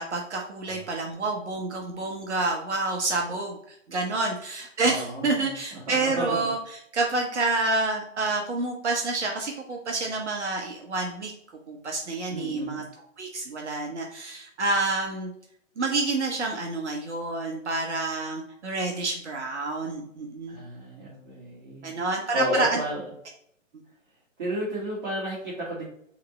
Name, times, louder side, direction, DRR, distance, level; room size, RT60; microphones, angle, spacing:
voice 1, 0.0-6.6 6.9-11.3 11.7-15.3 15.8-20.6 21.8-22.8, right 3 dB, 60° right, 1 dB, 0.8 m, -28 dB
voice 2, 4.8-6.4 12.3-12.9 20.5-21.9 22.3-23.0 24.4-25.9, equal, 40° right, -8 dB, 1.6 m, -32 dB
4.2 x 3.0 x 4.0 m, 0.71 s
figure-of-eight pair, 140°, 39 cm